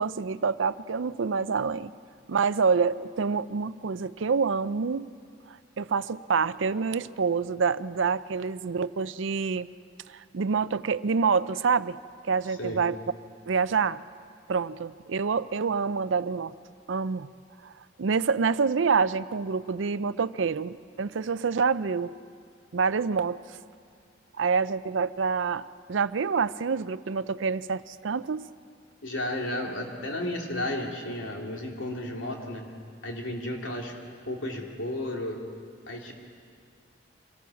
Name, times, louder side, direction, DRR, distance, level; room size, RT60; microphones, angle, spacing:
voice 1, 0.0-1.9 2.3-5.1 5.8-9.7 10.1-12.0 12.2-13.0 13.5-14.0 14.5-16.5 16.9-17.3 17.6-17.7 18.0-22.1 22.7-23.4 24.4-28.5, right 5 dB, 80° right, 15 dB, 0.5 m, -27 dB
voice 2, 29.0-32.7 33.0-33.9 34.2-35.4 35.9-36.1, left 1 dB, 80° left, 0 dB, 3.0 m, -33 dB
24.5 x 17.5 x 7.1 m, 2.2 s
head